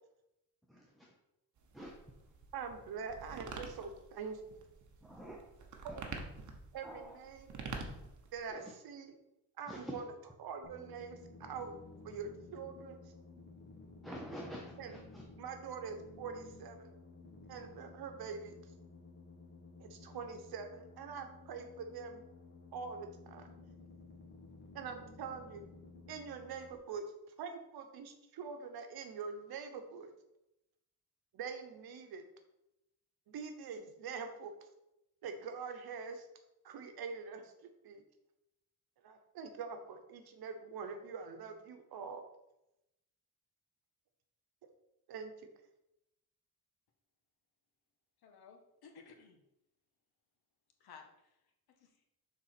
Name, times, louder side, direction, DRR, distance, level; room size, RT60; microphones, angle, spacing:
voice 1, 0.7-1.1 1.7-1.9 5.0-5.4 5.9-6.0 6.8-7.2 8.5-8.7 9.7-10.0 14.0-15.2, equal, ahead, -1 dB, 0.7 m, -47 dB
sound 1, 1.6-8.5, right 4 dB, 50° right, 1.1 m, -47 dB
voice 2, 2.5-4.4 5.9-6.1 6.7-7.6 8.3-9.1 9.6-10.0 10.4-11.8 12.0-13.0 14.8-15.0 15.4-16.9 17.5-18.6 19.8-22.2 22.7-23.5 24.7-25.7 26.1-27.0 27.4-30.1 31.3-32.2 33.3-34.5 35.2-36.3 36.6-38.0 39.0-42.2 45.1-45.3, right 5 dB, 75° right, 6 dB, 1.1 m, -44 dB
sound 2, 10.6-26.8, left 3 dB, 30° left, 1.3 m, -55 dB
voice 3, 48.2-49.4 50.8-51.4 51.8-52.0, left 5 dB, 90° left, 4 dB, 1.4 m, -57 dB
6.8 x 4.1 x 5.9 m, 0.89 s
wide cardioid pair, 175°, 37 cm